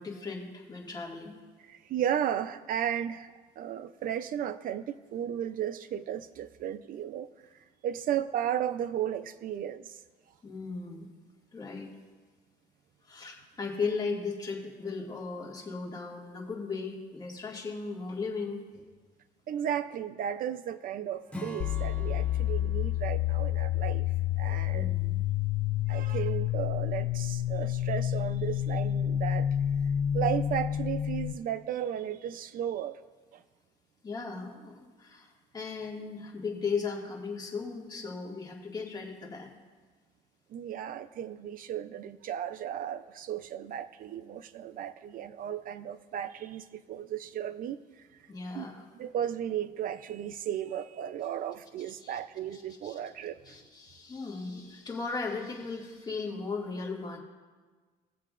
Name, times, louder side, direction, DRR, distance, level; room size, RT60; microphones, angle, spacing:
voice 1, 0.0-1.4 10.4-11.1 11.5-11.9 13.0-18.8 24.7-25.2 34.0-39.5 48.3-48.9 52.0-52.2 52.5-53.0 53.4-57.2, left 4 dB, 25° left, -2 dB, 2.0 m, -37 dB
voice 2, 1.7-7.3 7.8-10.0 19.5-24.1 24.4-24.9 25.9-29.5 30.1-33.0 33.3-33.4 40.5-47.8 48.5-48.7 49.0-53.6, right 10 dB, 55° right, 12 dB, 0.5 m, -34 dB
Acoustic guitar / Strum, 21.3-24.8, left 1 dB, 5° left, 1.1 m, -45 dB
sound 1, 21.6-31.3, left 11 dB, 55° left, 0.4 m, -29 dB
20.5 x 7.5 x 2.5 m, 1.4 s
cardioid pair, 110°, 17 cm